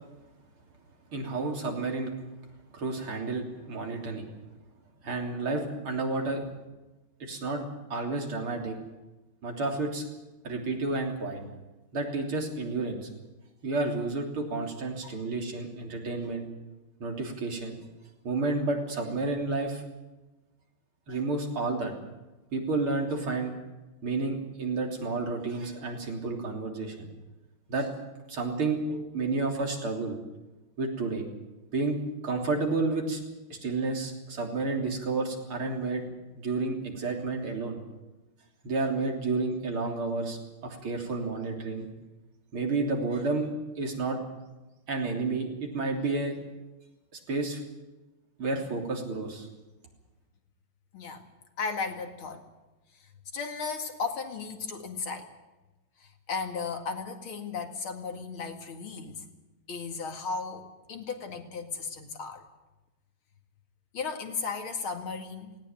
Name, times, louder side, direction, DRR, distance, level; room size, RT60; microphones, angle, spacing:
voice 1, 1.1-2.1 2.7-4.3 5.0-6.5 7.2-8.8 9.4-10.0 10.4-11.4 11.9-13.1 13.6-16.5 17.0-17.8 18.2-19.8 21.1-21.9 22.5-23.5 24.0-27.1 27.7-27.9 28.3-30.2 30.8-31.3 31.7-32.0 32.2-33.2 33.5-36.0 36.3-37.8 38.6-41.9 42.5-43.5 43.8-44.2 44.9-46.4 47.3-47.6 48.4-49.5, right 3 dB, 90° right, 1 dB, 4.2 m, -31 dB
voice 2, 51.6-52.5 52.9-55.3 56.0-59.3 59.7-62.4 63.9-65.6, left 5 dB, 75° left, 5 dB, 3.0 m, -35 dB
18.5 x 18.0 x 9.0 m, 1.1 s
omnidirectional pair, 2.3 m